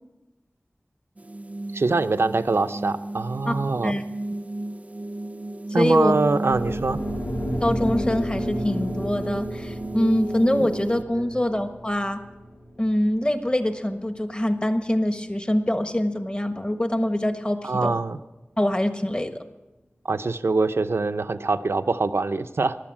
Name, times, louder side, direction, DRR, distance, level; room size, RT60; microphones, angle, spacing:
sound 1, 1.2-11.0, right 2 dB, 35° right, 0.4 m, -33 dB
voice 1, 1.7-4.0 5.7-7.0 11.2-11.3 17.6-18.2 20.1-22.8, right 3 dB, 90° right, 10 dB, 0.7 m, -23 dB
voice 2, 5.7-6.1 7.6-12.2 12.8-17.9 18.6-19.4, left 1 dB, 25° left, 7 dB, 1.4 m, -24 dB
sound 2, 6.5-14.7, equal, 90° left, 3.9 m, -32 dB
16.0 x 11.5 x 7.5 m, 1.0 s
wide cardioid pair, 50°, 4 cm